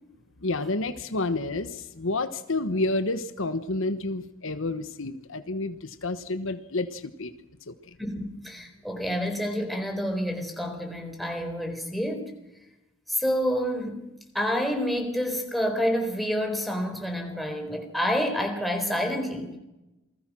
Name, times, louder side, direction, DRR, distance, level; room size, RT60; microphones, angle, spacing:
voice 1, 0.4-7.3 7.7-7.9, left 2 dB, 65° left, 10 dB, 1.2 m, -30 dB
voice 2, 8.0-12.3 13.1-14.0 14.3-19.6, equal, ahead, 3 dB, 4.2 m, -28 dB
28.0 x 20.5 x 6.2 m, 0.98 s
head